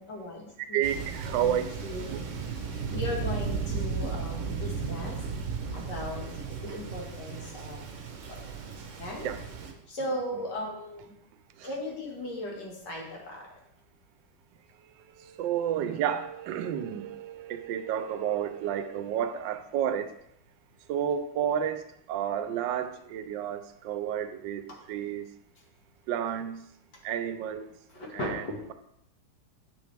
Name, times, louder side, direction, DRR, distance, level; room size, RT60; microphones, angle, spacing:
voice 1, 0.0-0.8 1.4-2.3 2.9-5.2 5.7-7.9 8.3-8.4 9.0-9.3 9.9-11.1 11.6-13.5 27.9-28.6, left 1 dB, 65° left, 2.4 m, -37 dB
voice 2, 0.7-1.7 2.1-2.2 9.2-9.4 11.6-11.7 15.2-20.1 20.9-24.6 24.9-25.3 26.1-26.7 27.0-27.7 28.1-28.4, right 9 dB, 85° right, 1.3 m, -31 dB
Thunder, 0.8-9.7, right 5 dB, 50° right, 1.1 m, -35 dB
8.4 x 6.2 x 3.3 m
omnidirectional pair, 2.0 m